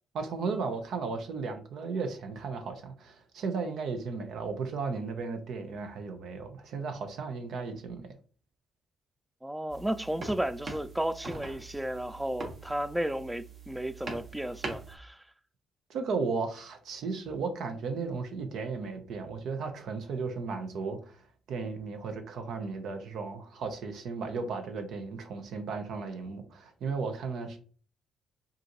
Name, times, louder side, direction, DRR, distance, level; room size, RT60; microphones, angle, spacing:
voice 1, 0.1-8.1 15.9-21.2 21.5-27.6, right 4 dB, 70° right, 0.8 m, -35 dB
voice 2, 9.4-15.2, right 1 dB, 5° right, 0.3 m, -33 dB
sound 1, 9.7-15.0, right 3 dB, 45° right, 1.2 m, -43 dB
5.0 x 2.7 x 3.0 m
cardioid pair, 90°, 0 cm